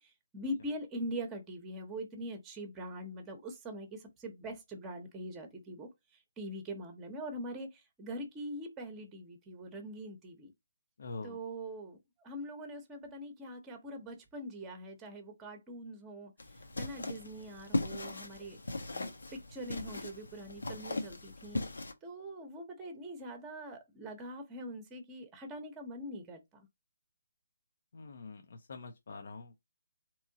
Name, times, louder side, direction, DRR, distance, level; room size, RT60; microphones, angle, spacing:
voice 1, 0.0-10.5 11.2-16.3 16.8-18.6 18.9-21.6 22.0-26.7, equal, 15° right, 0.8 m, -43 dB
voice 2, 11.0-11.4 27.9-28.4 28.7-29.6, left 3 dB, 55° left, 0.6 m, -44 dB
sound 1, 16.4-21.9, left 2 dB, 80° left, 0.9 m, -38 dB
3.6 x 3.0 x 2.7 m
figure-of-eight pair, 150°, 0 cm